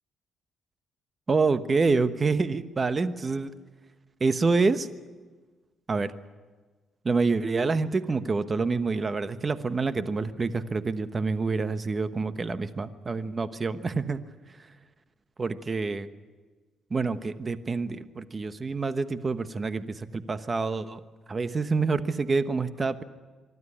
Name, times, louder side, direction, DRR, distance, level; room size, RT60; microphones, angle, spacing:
voice 1, 1.3-3.5 4.2-4.9 5.9-6.1 7.0-14.2 15.4-16.1 16.9-21.0 21.3-23.0, right 4 dB, 30° right, 12 dB, 1.1 m, -27 dB
24.5 x 12.5 x 9.9 m, 1.4 s
cardioid pair, 90°, 0 cm